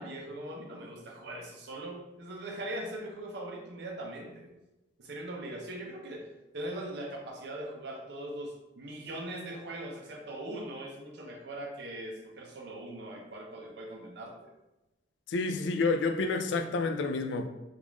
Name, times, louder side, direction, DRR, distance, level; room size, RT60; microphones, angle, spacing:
voice 1, 0.0-4.5 5.0-6.3 6.5-14.3, right 1 dB, 65° right, 0.6 m, -40 dB
voice 2, 15.3-17.5, left 3 dB, 80° left, 0.3 m, -29 dB
3.5 x 2.4 x 3.0 m
head